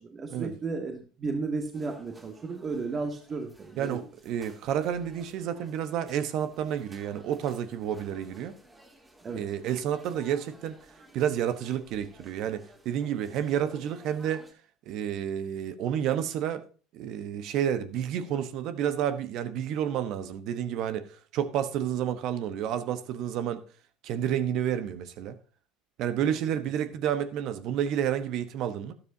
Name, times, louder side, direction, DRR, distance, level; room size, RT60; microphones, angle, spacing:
voice 1, 0.0-4.1 9.2-9.4, right 4 dB, 35° right, 1.8 m, -34 dB
sound 1, 1.7-14.5, right 1 dB, 15° right, 3.2 m, -55 dB
voice 2, 3.8-8.5 9.3-10.8 11.1-14.5 14.9-16.6 16.9-21.0 21.3-23.6 24.0-25.4 26.0-28.9, right 9 dB, 60° right, 1.1 m, -30 dB
12.0 x 12.0 x 2.8 m
hypercardioid pair, 70°, 0 cm